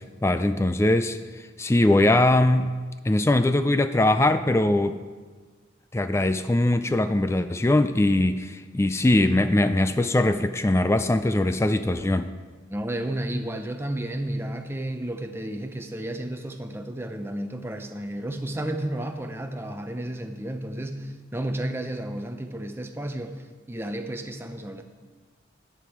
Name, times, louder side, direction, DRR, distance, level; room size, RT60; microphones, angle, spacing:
voice 1, 0.2-1.2 1.6-2.7 3.0-5.0 5.9-12.3, left 1 dB, 15° left, 10 dB, 0.3 m, -21 dB
voice 2, 12.7-23.4 23.7-24.8, right 1 dB, 10° right, 6 dB, 0.7 m, -32 dB
10.5 x 10.0 x 4.8 m, 1.4 s
head